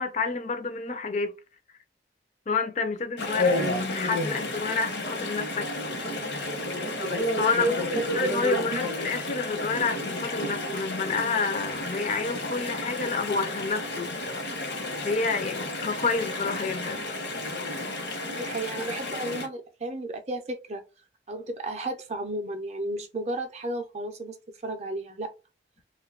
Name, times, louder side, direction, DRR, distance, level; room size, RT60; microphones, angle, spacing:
voice 1, 0.0-1.3 2.5-6.0 7.4-7.7 8.1-14.6 15.0-17.1, left 4 dB, 40° left, 0.4 m, -29 dB
Chatter / Stream, 3.2-19.5, left 1 dB, 70° left, 0.9 m, -31 dB
voice 2, 7.5-8.1 8.4-8.8 18.3-20.8 21.3-24.4 24.6-25.3, right 2 dB, 35° right, 0.5 m, -33 dB
2.6 x 2.3 x 3.5 m
head